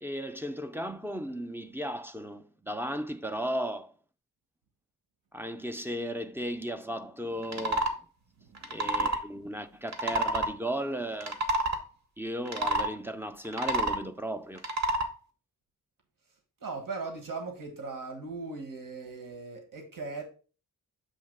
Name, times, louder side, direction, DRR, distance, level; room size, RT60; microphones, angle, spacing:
voice 1, 0.0-3.9 5.3-7.9 8.7-11.5 12.2-14.6, equal, 5° right, 0.5 m, -35 dB
sound 1, 7.4-7.9 8.6-9.2 9.9-10.5 11.1-11.8 12.5-12.9 13.4-14.0 14.6-15.1, right 2 dB, 55° right, 1.0 m, -28 dB
voice 2, 16.6-20.2, right 4 dB, 70° right, 1.5 m, -39 dB
7.3 x 2.8 x 5.4 m
wide cardioid pair, 105°, 34 cm